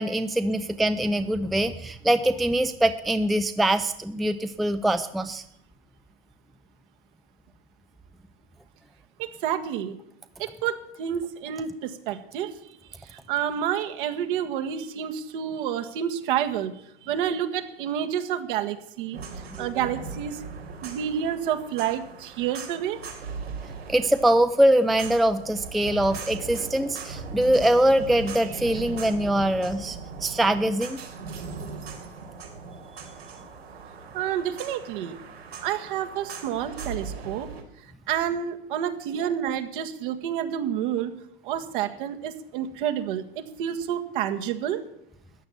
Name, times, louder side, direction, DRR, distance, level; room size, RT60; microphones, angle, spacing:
voice 1, 0.0-5.4 19.6-19.7 23.9-31.0, right 1 dB, ahead, 11 dB, 0.5 m, -23 dB
voice 2, 9.2-10.0 10.4-12.5 13.1-16.7 17.0-19.2 19.6-20.4 20.8-23.0 34.1-35.2 35.6-37.5 38.1-41.1 41.4-44.8, right 9 dB, 55° right, 6 dB, 1.8 m, -29 dB
sound 1, 19.1-37.6, right 4 dB, 85° right, 3.5 m, -39 dB
14.0 x 9.6 x 7.3 m, 0.76 s
hypercardioid pair, 110°, 30 cm